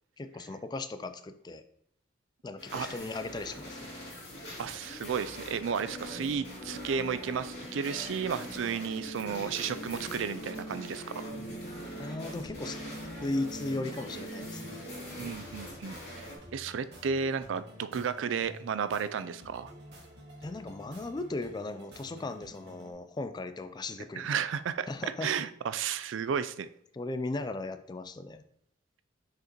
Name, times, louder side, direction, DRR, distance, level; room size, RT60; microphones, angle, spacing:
voice 1, 0.2-1.6 2.4-3.9 12.0-12.8 13.2-14.8 20.4-24.4 24.9-25.3 26.9-28.4, left 2 dB, 20° left, 11 dB, 0.3 m, -37 dB
sound 1, 2.6-16.4, equal, 65° left, 2.5 m, -44 dB
voice 2, 4.6-11.0 15.2-19.7 24.2-26.7, right 6 dB, 80° right, 13 dB, 0.4 m, -33 dB
sound 2, 5.8-15.3, right 1 dB, 45° left, 1.1 m, -44 dB
sound 3, 12.2-22.9, equal, 60° right, 1.7 m, -51 dB
6.4 x 5.0 x 2.9 m, 0.69 s
head